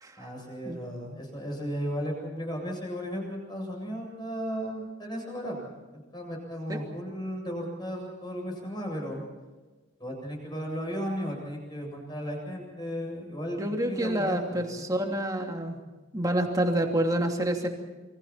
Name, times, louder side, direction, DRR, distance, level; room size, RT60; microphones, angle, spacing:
voice 1, 0.2-5.7 5.9-9.2 10.0-14.9, equal, 20° left, 0 dB, 7.9 m, -35 dB
voice 2, 13.6-15.8 16.1-17.7, right 1 dB, 15° right, 2 dB, 2.8 m, -28 dB
28.5 x 25.0 x 4.4 m, 1.3 s
head